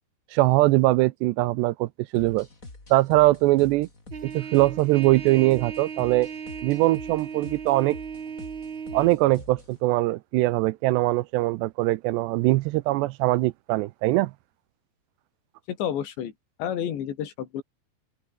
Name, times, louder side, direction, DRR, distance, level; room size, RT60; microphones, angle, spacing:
voice 1, 0.3-2.5 2.9-3.9 4.2-6.3 6.6-8.0 8.9-14.3, right 19 dB, 80° right, 2.7 m, -22 dB
sound 1, 2.1-9.8, left 2 dB, 20° left, 5.2 m, -46 dB
Trumpet, 4.1-9.1, right 6 dB, 40° right, 1.9 m, -37 dB
voice 2, 15.7-16.3 16.6-17.6, left 9 dB, 75° left, 4.9 m, -30 dB
open air
omnidirectional pair, 5.2 m